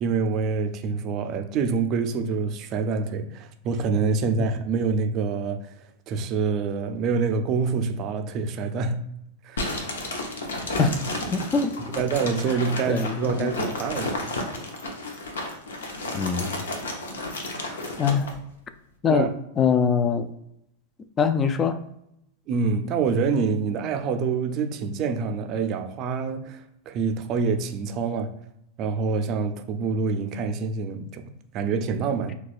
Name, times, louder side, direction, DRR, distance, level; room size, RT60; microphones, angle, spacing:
voice 1, 0.0-5.7 6.1-9.0 9.4-9.6 11.9-14.2 19.1-19.3 22.5-28.3 28.8-32.4, right 5 dB, 45° right, 0.4 m, -26 dB
sound 1, 9.6-18.3, left 2 dB, 80° left, 0.6 m, -32 dB
voice 2, 11.3-11.7 12.9-13.5 16.1-16.6 18.0-18.3 19.0-19.3 19.6-20.3 21.2-21.8, left 6 dB, 30° left, 0.3 m, -23 dB
4.1 x 2.2 x 2.4 m
hypercardioid pair, 95°, 0 cm